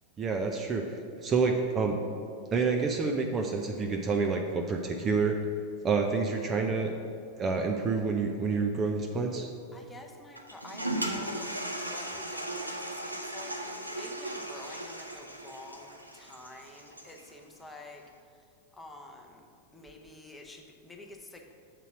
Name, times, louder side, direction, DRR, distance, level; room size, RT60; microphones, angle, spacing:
voice 1, 0.2-0.8 1.2-2.0 2.5-5.4 5.8-6.9 7.4-9.5, right 4 dB, 25° right, 3 dB, 0.5 m, -28 dB
voice 2, 9.7-18.0 18.7-21.4, left 2 dB, 10° left, 1 dB, 0.8 m, -49 dB
Toilet flush, 10.4-17.3, right 1 dB, 85° right, 0.6 m, -37 dB
7.3 x 3.9 x 6.1 m, 2.3 s
figure-of-eight pair, 90°, 0 cm